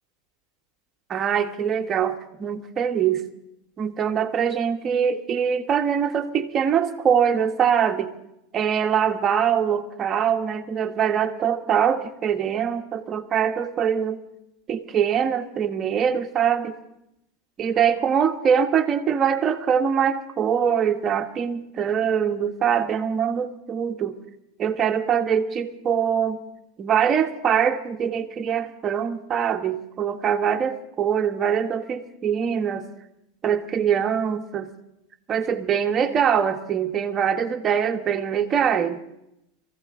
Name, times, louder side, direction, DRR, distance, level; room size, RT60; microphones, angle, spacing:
voice 1, 1.1-3.3 3.8-8.1 8.5-14.2 14.7-16.8 17.6-24.2 24.6-26.4 26.8-32.9 33.4-34.7 35.3-39.0, right 8 dB, 25° right, 5 dB, 1.4 m, -23 dB
24.0 x 15.5 x 3.8 m, 0.82 s
supercardioid pair, 150°, 0 cm